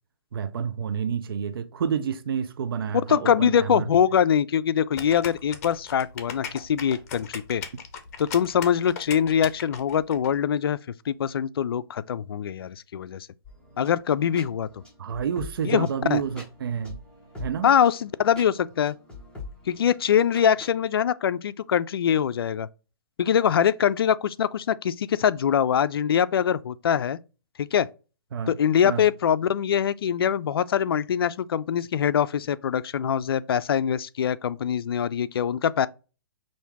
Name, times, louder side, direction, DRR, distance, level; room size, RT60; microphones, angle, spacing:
voice 1, 0.3-3.9 15.0-17.0 17.4-17.7 28.3-28.5 28.8-29.1, right 7 dB, 70° right, 0.6 m, -29 dB
voice 2, 3.1-7.6 8.2-10.8 11.1-13.3 13.8-14.8 15.6-16.2 17.6-18.9 19.7-22.7 23.2-27.2 27.6-27.9 28.5-35.9, left 8 dB, 70° left, 0.4 m, -23 dB
sound 1, 5.0-10.3, left 7 dB, 40° left, 0.9 m, -38 dB
sound 2, 13.4-20.8, left 3 dB, 5° left, 1.5 m, -44 dB
5.7 x 2.6 x 3.5 m
hypercardioid pair, 145°, 13 cm